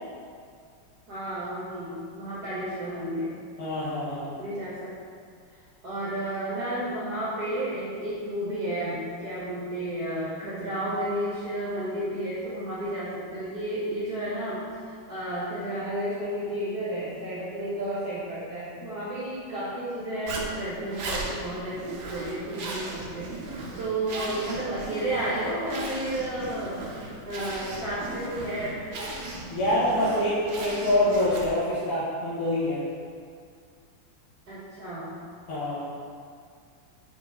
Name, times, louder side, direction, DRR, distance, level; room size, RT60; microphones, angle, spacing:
voice 1, 1.1-3.4 4.4-4.9 5.8-21.8 22.1-26.8 27.2-28.8 34.5-35.1, right 1 dB, 50° right, -10 dB, 1.7 m, -32 dB
voice 2, 3.6-4.3 29.5-32.8 35.5-35.8, left 1 dB, 90° left, -10 dB, 2.1 m, -25 dB
Zipper (clothing), 20.3-31.7, right 2 dB, 65° right, 1.5 m, -37 dB
5.3 x 5.0 x 4.8 m, 2.2 s
omnidirectional pair, 2.4 m